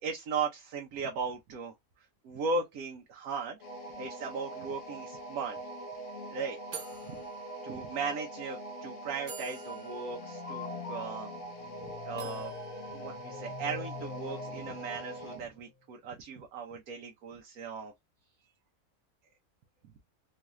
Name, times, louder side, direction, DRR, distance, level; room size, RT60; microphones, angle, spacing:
voice 1, 0.0-3.6 4.0-5.6 6.3-6.6 7.0-7.2 7.6-11.3 11.8-12.5 12.9-17.9, right 4 dB, 90° right, 1.1 m, -37 dB
sound 1, 3.6-15.5, right 2 dB, 65° left, 1.1 m, -43 dB
sound 2, 5.4-5.5 5.7-6.0 6.7-8.1 8.8-8.9 9.3-11.7 12.2-13.8, right 5 dB, 55° right, 0.6 m, -49 dB
sound 3, 10.0-15.5, left 7 dB, 85° left, 1.1 m, -44 dB
3.2 x 2.4 x 2.8 m
omnidirectional pair, 1.5 m